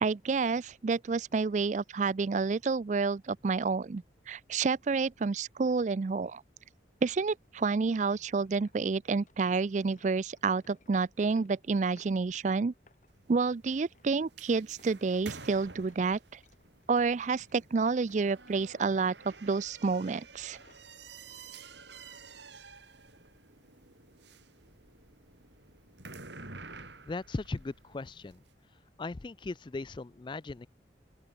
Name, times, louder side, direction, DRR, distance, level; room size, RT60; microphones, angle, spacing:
voice 1, 0.0-6.4 7.0-12.7 13.3-16.4 16.9-20.6, right 4 dB, 40° right, 0.4 m, -29 dB
sound 1, 7.4-13.4 13.8-16.0 16.3-19.5 19.8-20.8, left 2 dB, 45° left, 6.1 m, -63 dB
sound 2, 13.1-28.5, right 4 dB, 75° right, 6.9 m, -51 dB
voice 2, 27.0-28.4 29.0-30.7, left 3 dB, 25° left, 0.4 m, -38 dB
open air
head